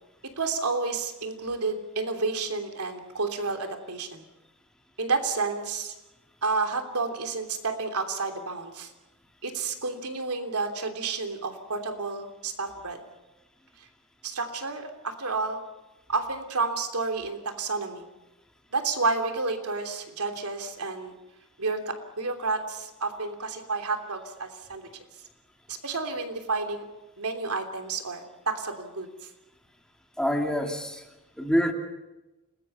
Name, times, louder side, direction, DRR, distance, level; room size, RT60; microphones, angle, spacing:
voice 1, 0.4-4.2 5.0-5.9 6.4-8.9 9.4-13.0 14.2-15.6 16.1-18.0 18.7-21.1 21.6-24.9 25.7-26.9 27.2-29.1, right 4 dB, 85° right, 5 dB, 3.2 m, -30 dB
voice 2, 30.2-31.0 31.4-31.7, equal, 5° left, 2 dB, 2.6 m, -26 dB
30.0 x 21.0 x 5.6 m, 1.0 s
head